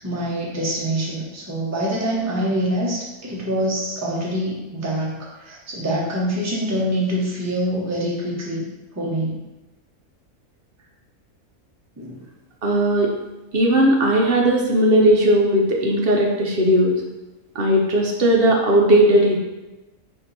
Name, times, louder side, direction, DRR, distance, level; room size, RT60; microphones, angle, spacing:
voice 1, 0.0-8.7 8.9-9.4 12.0-12.2, right 1 dB, 15° right, -5 dB, 0.7 m, -25 dB
voice 2, 12.6-13.1 13.5-17.0 17.5-19.4, right 1 dB, 60° right, 0 dB, 0.6 m, -17 dB
4.3 x 2.9 x 4.0 m, 1.1 s
omnidirectional pair, 1.6 m